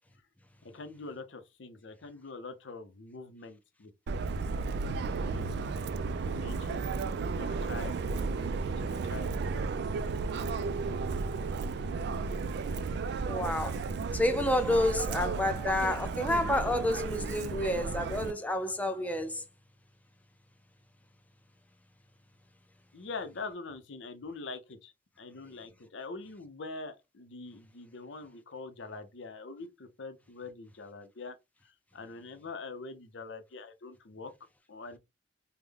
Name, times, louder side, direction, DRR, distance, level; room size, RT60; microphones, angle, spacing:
voice 1, 0.6-3.9 5.0-5.7 6.3-6.9 7.2-9.6 22.9-31.4 31.6-35.0, left 3 dB, 80° left, 0.7 m, -44 dB
Subway metro underground, 4.1-18.3, right 4 dB, 65° right, 0.3 m, -33 dB
voice 2, 13.2-13.8 14.1-19.4, left 1 dB, 10° left, 0.5 m, -29 dB
3.4 x 2.1 x 3.4 m
head